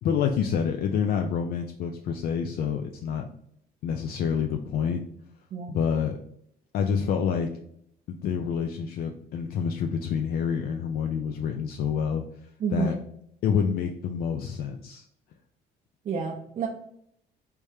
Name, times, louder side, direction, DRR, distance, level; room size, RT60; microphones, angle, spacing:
voice 1, 0.0-3.3 3.8-5.0 5.7-6.1 6.7-7.5 8.1-12.2 12.7-12.9 13.4-15.1, left 7 dB, 65° left, 4 dB, 0.4 m, -27 dB
voice 2, 12.6-13.0 16.0-16.7, right 6 dB, 45° right, 0 dB, 0.5 m, -29 dB
3.3 x 3.3 x 2.7 m, 0.69 s
cardioid pair, 110°, 17 cm